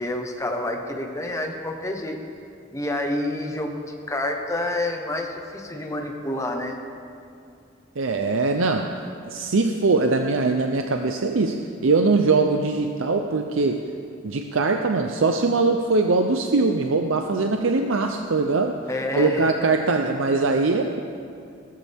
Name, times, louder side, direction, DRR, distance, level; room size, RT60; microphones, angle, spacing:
voice 1, 0.0-2.2 2.7-6.7 18.9-19.5, left 1 dB, 15° left, 3 dB, 1.2 m, -28 dB
voice 2, 8.0-13.8 14.2-18.8 19.2-21.0, right 3 dB, 75° right, 4 dB, 0.6 m, -22 dB
18.0 x 13.5 x 3.6 m, 2.5 s
head